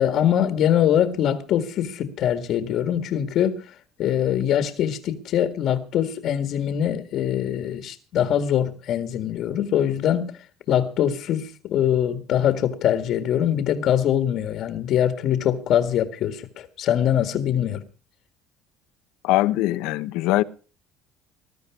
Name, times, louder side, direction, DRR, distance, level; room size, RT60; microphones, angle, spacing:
voice 1, 0.0-10.3 10.7-17.8, left 10 dB, 50° left, 1.9 m, -23 dB
voice 2, 19.2-20.4, left 17 dB, 75° left, 1.1 m, -21 dB
20.5 x 12.0 x 4.8 m
cardioid pair, 145°, 0 cm